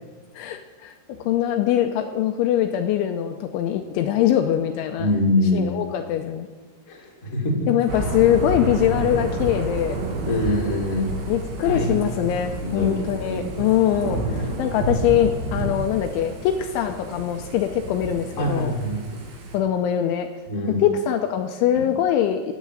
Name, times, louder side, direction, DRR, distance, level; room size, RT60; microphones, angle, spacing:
voice 1, 0.4-0.9 1.2-5.1 5.5-6.5 7.7-10.0 11.2-18.7 19.5-20.3 20.7-22.5, left 10 dB, 85° left, 6 dB, 2.8 m, -22 dB
voice 2, 5.0-5.8 6.9-7.7 10.2-11.1 11.6-12.0 12.6-13.5 18.4-19.2 20.5-20.8, left 1 dB, 25° left, 0 dB, 1.7 m, -24 dB
Thunder / Rain, 7.9-19.6, right 2 dB, 65° right, 4.5 m, -30 dB
17.0 x 8.3 x 7.8 m, 1.3 s
omnidirectional pair, 6.0 m